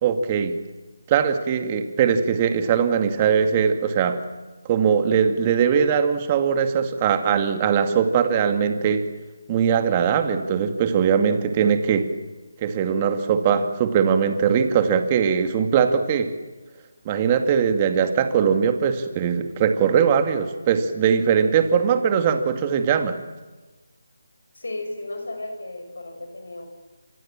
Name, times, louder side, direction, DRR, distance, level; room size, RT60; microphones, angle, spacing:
voice 1, 0.0-0.5 1.1-4.2 4.6-9.0 9.5-12.1 12.6-16.3 17.1-23.2, right 7 dB, 25° right, 7 dB, 2.4 m, -21 dB
voice 2, 24.5-26.7, left 2 dB, 75° left, 5 dB, 5.8 m, -34 dB
28.0 x 26.5 x 7.5 m, 1.2 s
figure-of-eight pair, 155°, 0 cm